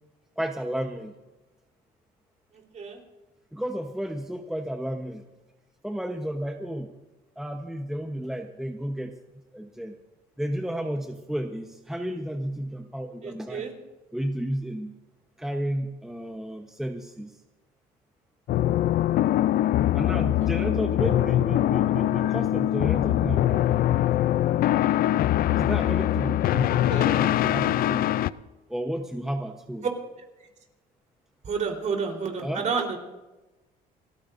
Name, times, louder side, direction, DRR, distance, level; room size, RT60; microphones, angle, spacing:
voice 1, 0.4-1.1 3.5-5.2 5.8-6.9 7.4-9.1 9.5-9.9 10.4-13.6 14.1-15.0 15.4-17.4 19.9-23.5 25.5-26.7 27.0-28.2 28.7-29.9 32.4-32.6, equal, 5° right, 4 dB, 1.0 m, -32 dB
voice 2, 2.5-3.0 13.2-13.7 26.9-27.1 29.8-29.9 31.4-33.0, right 5 dB, 45° right, 2 dB, 3.9 m, -30 dB
sound 1, 18.5-28.3, left 13 dB, 60° left, 0.5 m, -23 dB
29.5 x 14.0 x 2.6 m, 1.1 s
cardioid pair, 110°, 17 cm